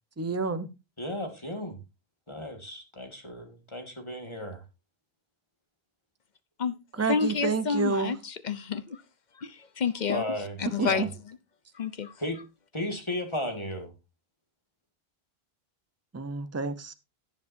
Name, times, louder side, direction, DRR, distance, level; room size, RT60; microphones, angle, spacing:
voice 1, 0.2-0.7 7.0-8.1 10.8-11.1 16.1-16.9, right 4 dB, 15° right, 0.7 m, -29 dB
voice 2, 1.0-1.8 2.3-4.6 10.1-11.1 12.2-12.4 12.7-13.9, left 1 dB, 30° left, 2.0 m, -35 dB
voice 3, 6.6-9.0 9.3-11.1 11.7-12.1, left 5 dB, 50° left, 0.9 m, -30 dB
17.5 x 7.4 x 2.7 m
omnidirectional pair, 1.0 m